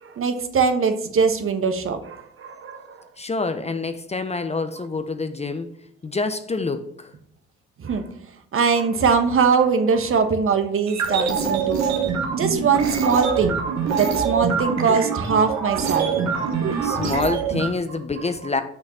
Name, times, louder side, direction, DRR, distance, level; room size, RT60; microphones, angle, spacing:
voice 1, 0.0-3.1 4.8-4.9 7.8-8.1 8.5-11.8 12.3-16.6 18.2-18.6, right 5 dB, 45° right, 1.2 m, -22 dB
voice 2, 3.2-5.7 6.0-7.1 16.8-18.6, left 3 dB, 20° left, 0.8 m, -27 dB
sound 1, 10.9-17.7, right 6 dB, 60° right, 1.7 m, -24 dB
6.4 x 6.0 x 5.6 m
hypercardioid pair, 55°, 31 cm